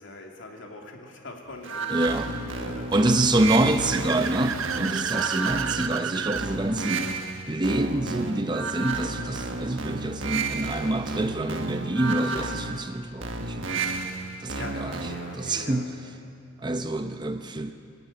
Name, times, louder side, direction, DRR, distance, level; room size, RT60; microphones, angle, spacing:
voice 1, 0.0-2.0 2.5-4.2 5.0-5.6 6.6-6.7 14.3-16.2, left 2 dB, 70° left, 1 dB, 2.7 m, -42 dB
sound 1, 1.6-15.4, right 4 dB, 70° right, 1.4 m, -32 dB
voice 2, 1.9-2.3 2.9-7.1 7.5-13.7 14.4-15.0 15.4-15.9 16.6-17.7, right 1 dB, 20° right, 8 dB, 0.7 m, -26 dB
Car / Accelerating revving vroom, 3.3-6.5, right 7 dB, 90° right, 0.7 m, -32 dB
22.5 x 13.0 x 9.4 m, 2.4 s
head